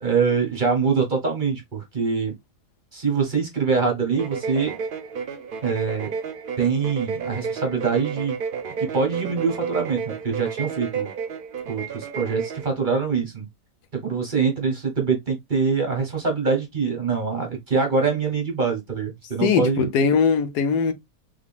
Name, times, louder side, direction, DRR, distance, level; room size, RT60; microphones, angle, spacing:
voice 1, 0.0-2.3 2.9-4.7 5.6-6.1 6.6-8.4 8.8-11.1 11.7-13.4 13.9-19.9, right 5 dB, 35° right, 1.1 m, -24 dB
sound 1, 4.1-12.7, right 6 dB, 80° right, 0.4 m, -31 dB
voice 2, 19.4-20.9, left 5 dB, 80° left, 1.2 m, -20 dB
3.6 x 3.5 x 2.4 m
omnidirectional pair, 1.7 m